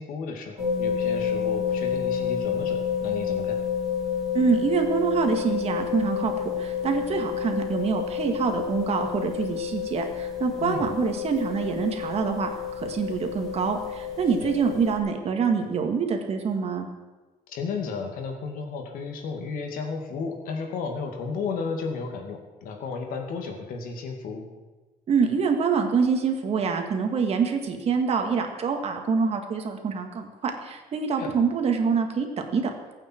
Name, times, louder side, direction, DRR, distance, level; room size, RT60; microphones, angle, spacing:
voice 1, 0.0-3.6 10.6-10.9 14.4-14.5 17.5-24.5 31.2-31.4, left 5 dB, 80° left, 3 dB, 2.4 m, -33 dB
sound 1, 0.6-14.9, left 8 dB, ahead, 4.6 m, -29 dB
voice 2, 4.3-12.5 12.8-16.9 25.1-32.7, right 5 dB, 45° right, 4 dB, 2.1 m, -25 dB
23.5 x 8.9 x 4.7 m, 1.2 s
cardioid pair, 130°, 14 cm